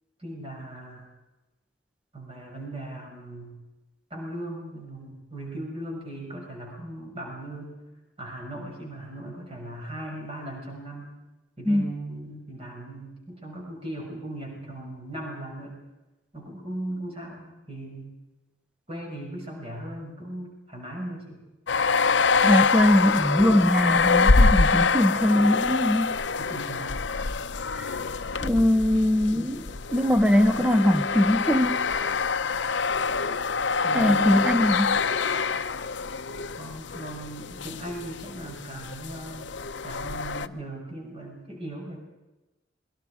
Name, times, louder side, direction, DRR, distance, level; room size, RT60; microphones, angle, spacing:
voice 1, 0.2-1.1 2.1-3.6 4.1-7.8 8.2-11.1 11.6-15.8 16.3-18.1 18.9-21.4 26.4-27.0 33.8-34.7 36.6-39.6 39.8-42.0, right 1 dB, 30° right, -1 dB, 6.2 m, -38 dB
sound 1, 21.7-40.5, left 4 dB, 65° left, 0.8 m, -25 dB
voice 2, 22.4-26.2 27.7-28.0 28.4-31.9 33.9-35.0, left 1 dB, 5° right, 10 dB, 0.7 m, -22 dB
27.0 x 22.0 x 5.0 m, 1.1 s
head